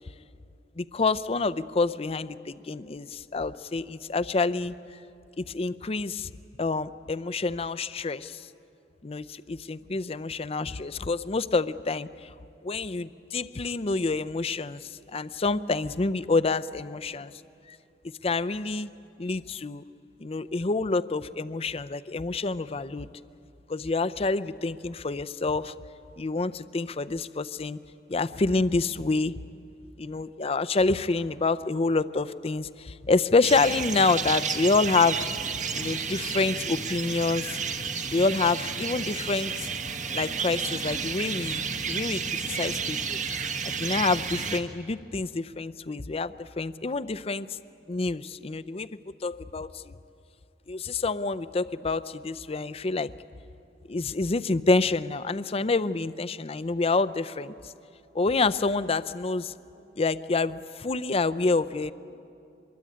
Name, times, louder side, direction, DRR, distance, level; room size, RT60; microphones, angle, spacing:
voice 1, 0.8-5.0 5.4-6.3 6.6-8.5 9.0-12.3 12.6-17.3 17.7-17.8 18.2-18.9 19.2-19.8 20.2-23.1 23.7-25.7 26.2-27.8 28.1-29.3 30.0-35.3 35.7-37.6 38.1-39.7 40.1-43.2 43.6-47.5 47.9-48.9 49.2-49.9 50.7-53.1 53.9-57.7 58.1-59.5 60.0-61.9, left 3 dB, 35° left, 13 dB, 0.5 m, -27 dB
sound 1, 33.4-44.6, right 6 dB, 45° right, 1.3 m, -31 dB
24.5 x 22.5 x 8.7 m, 2.6 s
head